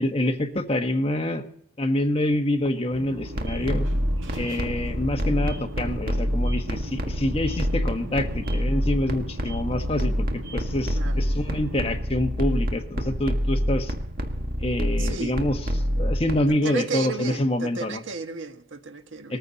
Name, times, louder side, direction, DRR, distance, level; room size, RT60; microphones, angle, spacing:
voice 1, 0.0-1.4 1.8-3.9 4.3-10.3 10.5-13.9 14.6-15.6 16.0-18.0 19.3-19.4, left 1 dB, 30° left, 1.4 m, -26 dB
sound 1, 2.9-12.0, equal, 90° right, 4.7 m, -40 dB
sound 2, 3.3-16.4, equal, 45° right, 1.8 m, -27 dB
voice 2, 15.0-15.4 16.5-19.4, right 5 dB, 70° right, 1.5 m, -33 dB
20.5 x 14.5 x 4.1 m
head